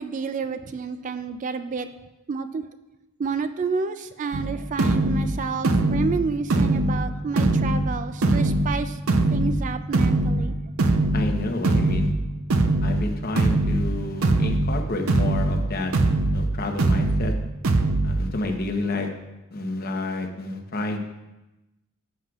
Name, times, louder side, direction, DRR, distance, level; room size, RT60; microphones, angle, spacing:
voice 1, 0.0-2.7 3.2-10.6, right 5 dB, 35° right, 10 dB, 0.3 m, -30 dB
sound 1, 4.3-18.3, right 2 dB, 70° right, 0.6 m, -23 dB
voice 2, 11.1-12.1 12.8-15.9 16.3-17.3 18.0-19.1 19.5-21.0, left 2 dB, 45° left, 3 dB, 0.9 m, -29 dB
11.0 x 7.6 x 2.4 m, 1.0 s
head